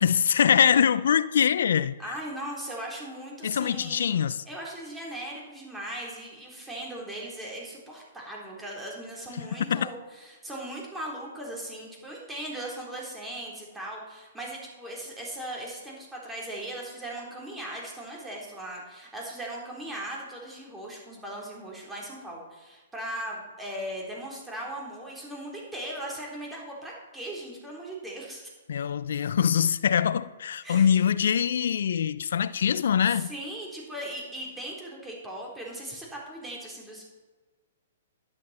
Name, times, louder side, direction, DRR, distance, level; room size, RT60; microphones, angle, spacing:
voice 1, 0.0-2.2 3.4-4.4 9.7-9.9 28.7-33.3, left 8 dB, 75° left, 0.5 m, -23 dB
voice 2, 2.0-4.2 4.5-28.5 30.6-31.1 33.1-37.0, right 1 dB, 5° right, 3.7 m, -38 dB
11.5 x 11.0 x 4.3 m
hypercardioid pair, 140°, 0 cm